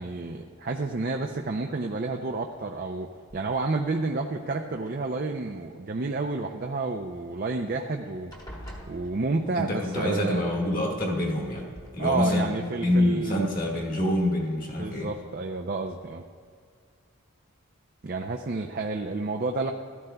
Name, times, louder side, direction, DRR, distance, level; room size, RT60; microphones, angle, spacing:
voice 1, 0.0-3.1 3.3-8.3 8.9-10.4 12.0-13.5 14.8-16.2 18.0-19.7, right 3 dB, 45° right, 2 dB, 0.4 m, -30 dB
sound 1, 3.3-3.9 4.7-5.6 7.4-7.5 7.7-8.0 8.3-9.7 10.9-11.0 11.5-11.9, equal, 15° left, 1.2 m, -45 dB
voice 2, 9.5-11.6 11.9-12.5 12.8-15.1, left 1 dB, 40° left, -2 dB, 1.6 m, -26 dB
15.5 x 13.0 x 2.3 m, 2.1 s
head